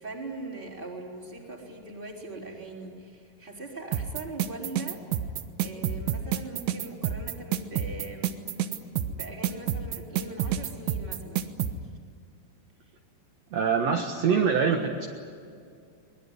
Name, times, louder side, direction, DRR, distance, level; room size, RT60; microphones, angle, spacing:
voice 1, 0.0-5.0 5.6-8.3 9.1-11.5, right 2 dB, 10° right, 0 dB, 3.8 m, -41 dB
sound 1, 3.9-11.7, right 10 dB, 85° right, 3.3 m, -29 dB
voice 2, 13.5-15.1, right 6 dB, 55° right, 2 dB, 2.0 m, -24 dB
24.5 x 20.5 x 9.7 m, 2.4 s
omnidirectional pair, 5.0 m